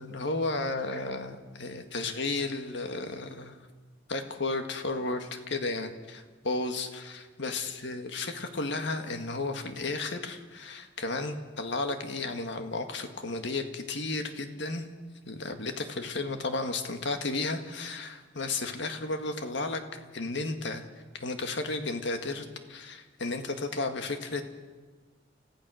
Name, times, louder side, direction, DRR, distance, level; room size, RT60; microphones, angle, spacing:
voice 1, 0.0-3.6 4.1-14.9 15.3-20.8 21.1-24.5, left 3 dB, 65° left, 6 dB, 1.8 m, -33 dB
29.5 x 15.5 x 6.4 m, 1.4 s
head